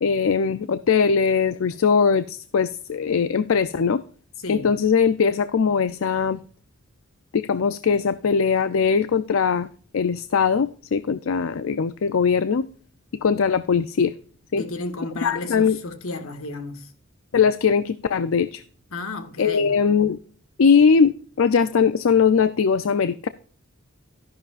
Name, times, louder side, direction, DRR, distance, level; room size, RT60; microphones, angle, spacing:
voice 1, 0.0-4.0 4.5-6.4 7.3-9.7 9.9-12.7 13.2-14.1 14.5-14.6 15.2-15.8 17.3-18.6 19.4-20.2 20.6-23.3, left 6 dB, 70° left, 0.4 m, -20 dB
voice 2, 14.6-16.9 18.9-19.7, left 3 dB, 90° left, 1.7 m, -32 dB
13.0 x 10.5 x 2.5 m
head